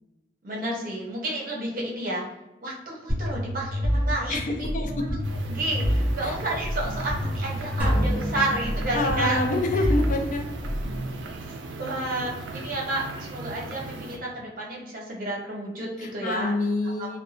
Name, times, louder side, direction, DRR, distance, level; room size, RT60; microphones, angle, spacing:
voice 1, 0.4-2.2 2.6-5.0 5.5-9.4 9.7-9.9 11.8-16.5 17.0-17.1, right 2 dB, 50° right, -3 dB, 0.8 m, -31 dB
sound 1, 3.1-11.1, equal, 20° left, 1.2 m, -28 dB
voice 2, 4.3-4.9 6.2-6.3 8.9-10.4 16.0-17.2, left 2 dB, 45° left, 3 dB, 0.4 m, -27 dB
sound 2, 5.2-14.2, right 3 dB, 90° right, 0.4 m, -38 dB
sound 3, 7.8-9.6, equal, 10° right, 0.7 m, -32 dB
2.6 x 2.2 x 2.7 m, 0.96 s
head